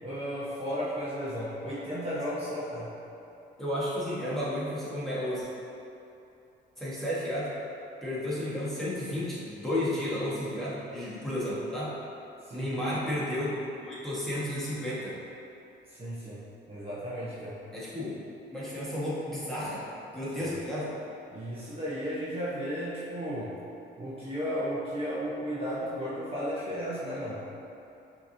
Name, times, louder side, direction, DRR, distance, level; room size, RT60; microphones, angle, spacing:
voice 1, 0.0-2.9 12.5-12.7 15.9-16.4 16.7-17.6 21.3-23.5 24.0-27.4, equal, 30° right, -9 dB, 0.9 m, -34 dB
voice 2, 3.6-5.5 6.8-7.5 8.0-11.9 12.5-15.2 17.7-18.2 18.5-20.9, left 1 dB, ahead, -10 dB, 1.4 m, -32 dB
5.7 x 2.9 x 2.7 m, 2.8 s
cardioid pair, 90°, 20 cm